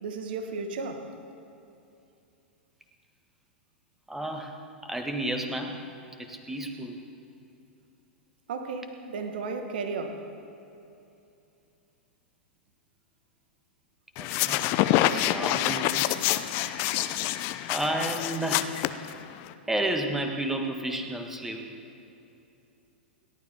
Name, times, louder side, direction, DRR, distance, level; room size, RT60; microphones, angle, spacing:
voice 1, 0.0-1.1 8.5-10.2, right 4 dB, 55° right, 6 dB, 1.5 m, -34 dB
voice 2, 4.1-4.6 4.8-5.8 6.2-7.0 14.2-14.6 15.0-16.0 16.6-17.2 17.7-18.7 19.7-21.6, right 1 dB, 5° right, 4 dB, 1.7 m, -32 dB
sound 1, 14.2-19.5, left 14 dB, 40° left, 0.6 m, -27 dB
28.5 x 12.0 x 3.6 m, 2.8 s
figure-of-eight pair, 95°, 6 cm